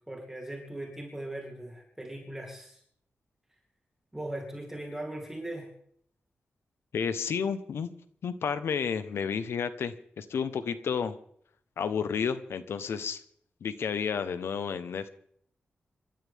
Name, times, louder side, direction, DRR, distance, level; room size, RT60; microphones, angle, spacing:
voice 1, 0.1-2.8 4.1-5.7, right 1 dB, 10° right, -1 dB, 3.2 m, -39 dB
voice 2, 6.9-7.9 8.2-11.2 11.8-13.2 13.6-15.1, left 6 dB, 90° left, 12 dB, 1.1 m, -31 dB
27.0 x 13.0 x 3.6 m, 0.65 s
wide cardioid pair, 110°, 4 cm